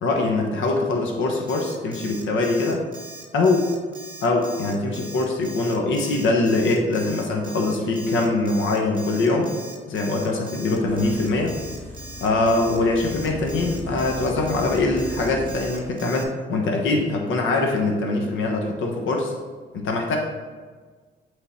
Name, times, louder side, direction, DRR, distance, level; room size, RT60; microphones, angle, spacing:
voice 1, 0.0-2.8 3.3-3.7 4.2-9.5 9.9-11.6 12.2-19.3 19.7-20.2, left 2 dB, 80° left, 1 dB, 1.1 m, -23 dB
Alarm, 1.5-16.2, right 2 dB, 25° right, 1.3 m, -41 dB
sound 1, 10.9-15.9, left 2 dB, 10° left, 1.7 m, -37 dB
8.2 x 3.9 x 4.2 m, 1.4 s
cardioid pair, 90°, 20 cm